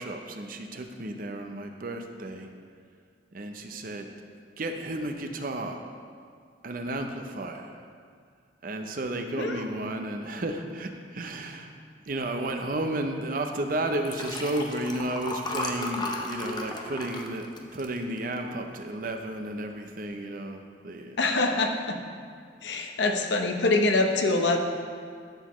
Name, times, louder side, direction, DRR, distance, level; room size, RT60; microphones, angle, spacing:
voice 1, 0.0-2.5 3.3-4.1 4.6-5.9 6.6-7.8 8.6-11.7 12.1-17.5 17.7-21.2, right 1 dB, 50° right, 5 dB, 0.6 m, -33 dB
Liquid, 13.9-18.6 19.1-19.3 19.6-19.7, left 2 dB, 25° left, 0.5 m, -35 dB
voice 2, 21.2-22.0 22.6-24.6, left 2 dB, 75° left, 4 dB, 0.7 m, -24 dB
11.5 x 6.3 x 3.1 m, 2.1 s
head